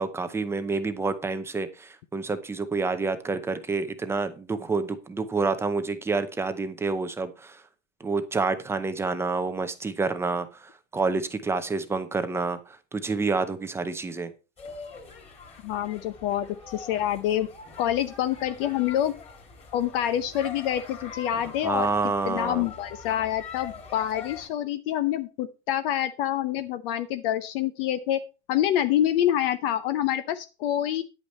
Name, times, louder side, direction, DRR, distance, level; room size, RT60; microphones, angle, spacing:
voice 1, 0.0-7.6 8.0-14.3 21.6-22.6, right 3 dB, 5° right, 10 dB, 0.6 m, -28 dB
sound 1, 14.6-24.5, left 5 dB, 15° left, 2.6 m, -44 dB
voice 2, 15.6-17.5 17.8-19.1 19.7-21.9 22.2-28.2 28.5-31.0, left 11 dB, 45° left, 11 dB, 0.8 m, -26 dB
9.9 x 8.6 x 4.3 m, 0.31 s
supercardioid pair, 150°, 39 cm